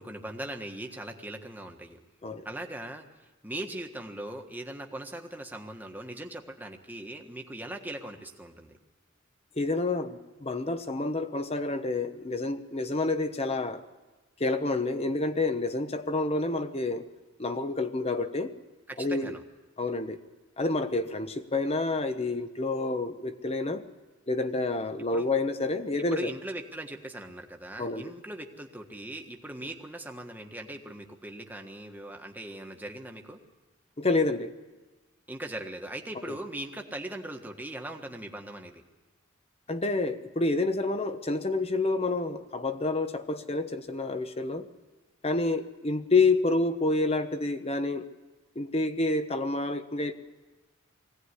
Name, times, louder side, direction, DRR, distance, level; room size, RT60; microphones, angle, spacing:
voice 1, 0.0-2.0 2.4-3.1 3.4-8.8 18.9-19.4 25.1-25.3 26.1-33.4 35.3-38.8, right 1 dB, 10° right, 3 dB, 1.4 m, -40 dB
voice 2, 9.6-13.8 14.4-17.0 17.4-18.5 19.0-19.3 19.8-20.2 20.6-23.8 24.3-26.3 27.8-28.0 34.0-34.5 39.7-44.7 45.2-48.0 48.6-50.1, left 3 dB, 30° left, 10 dB, 1.0 m, -28 dB
21.5 x 17.0 x 9.8 m, 1.2 s
head